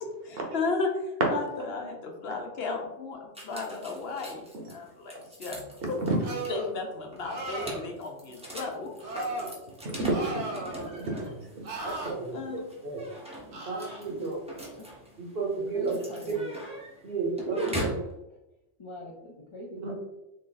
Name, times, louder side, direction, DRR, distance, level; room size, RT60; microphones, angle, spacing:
voice 1, 0.2-0.9 1.3-5.6 5.9-6.0 6.5-8.9 12.3-12.7 14.1-14.2, left 4 dB, 65° left, 2 dB, 0.9 m, -34 dB
sound 1, 3.3-18.1, equal, 5° right, 0.6 m, -42 dB
sound 2, 6.2-6.7 7.2-7.9 9.0-9.5 10.1-10.9 11.6-12.1 13.5-14.0, right 2 dB, 75° right, 1.1 m, -36 dB
voice 2, 9.8-10.7 10.9-11.3 11.8-12.4 12.8-13.0 13.7-14.4 15.2-15.9 16.3-16.4 17.0-17.9 19.8-19.9, right 3 dB, 60° right, 0 dB, 1.0 m, -31 dB
voice 3, 15.6-16.5 17.4-17.8 18.8-19.9, left 2 dB, 45° left, -2 dB, 0.4 m, -42 dB
3.2 x 2.6 x 3.8 m, 0.94 s
omnidirectional pair, 1.2 m